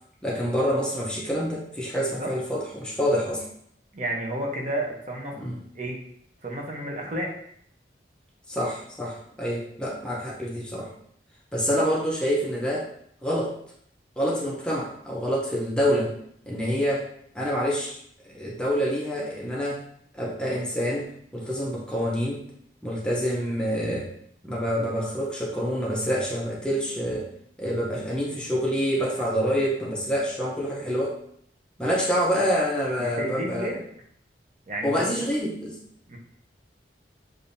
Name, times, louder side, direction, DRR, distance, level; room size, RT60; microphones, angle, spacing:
voice 1, 0.2-3.4 5.4-5.6 8.5-10.9 11.5-12.9 13.2-13.5 14.2-16.1 16.5-17.1 17.3-18.0 18.3-19.8 20.1-22.4 22.8-24.1 24.4-27.3 27.6-31.2 31.8-33.7 34.8-35.8, equal, 5° left, -4 dB, 0.7 m, -27 dB
voice 2, 2.0-2.3 3.9-5.4 5.7-6.0 6.4-7.3 33.0-33.8 34.7-35.3 36.1-36.2, right 1 dB, 40° right, 0 dB, 0.8 m, -31 dB
6.8 x 2.6 x 2.6 m, 0.66 s
head